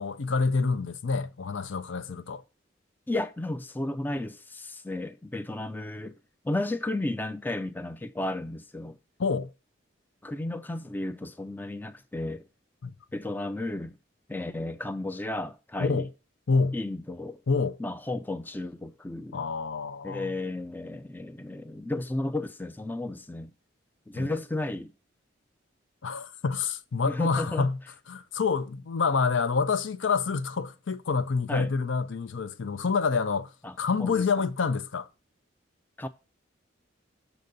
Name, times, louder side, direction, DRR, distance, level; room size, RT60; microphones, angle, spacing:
voice 1, 0.0-2.4 9.2-9.5 12.8-12.9 15.8-16.1 16.5-16.8 17.5-17.8 19.3-20.3 24.2-24.4 26.0-27.8 28.1-33.5 33.8-35.1, left 4 dB, 70° left, 0.5 m, -27 dB
voice 2, 3.1-6.2 6.4-9.0 10.2-12.4 13.1-14.0 14.3-16.1 16.7-17.4 17.8-19.4 20.0-23.5 24.1-24.9 27.1-27.7 31.5-31.7 33.6-34.3 36.0-36.1, left 2 dB, 10° left, 0.3 m, -33 dB
6.8 x 4.0 x 6.5 m
head